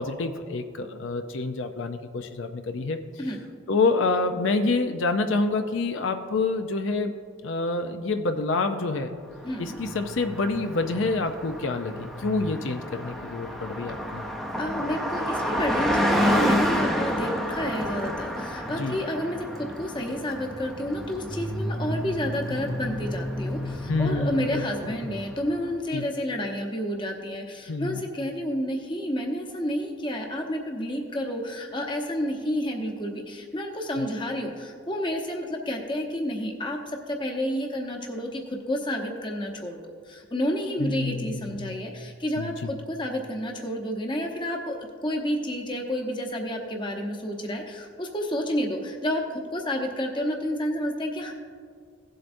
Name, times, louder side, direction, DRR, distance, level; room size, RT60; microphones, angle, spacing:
voice 1, 0.0-3.0 3.7-7.1 7.4-9.1 9.6-14.3 18.8-19.0 23.9-24.9 25.9-26.0 27.7-28.0 40.8-41.8 42.4-42.7, left 3 dB, 75° left, 7 dB, 0.5 m, -27 dB
voice 2, 9.4-9.8 14.6-51.3, equal, 25° left, 2 dB, 0.9 m, -30 dB
Car passing by, 9.4-25.5, equal, ahead, 0.6 m, -30 dB
17.0 x 7.7 x 2.6 m, 2.1 s
head